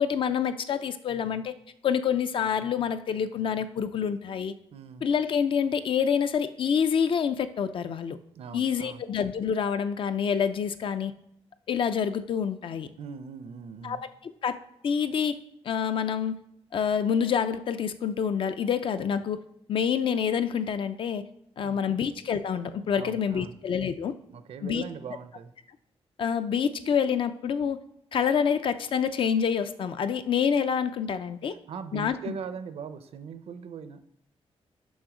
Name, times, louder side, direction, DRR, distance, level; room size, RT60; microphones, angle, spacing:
voice 1, 0.0-1.5 1.8-4.5 5.0-8.2 8.5-11.1 11.7-12.9 13.8-14.0 14.4-14.6 14.8-15.4 15.6-16.4 16.7-19.4 19.7-21.2 21.6-24.1 24.6-24.8 26.2-27.8 28.1-31.5 31.9-32.3, left 7 dB, 55° left, 11 dB, 0.4 m, -27 dB
voice 2, 4.7-5.1 8.3-9.1 13.0-14.0 21.6-22.0 22.9-23.6 24.3-25.5 31.5-34.1, right 6 dB, 70° right, 11 dB, 0.6 m, -40 dB
6.3 x 5.8 x 4.9 m, 0.73 s
wide cardioid pair, 175°, 11 cm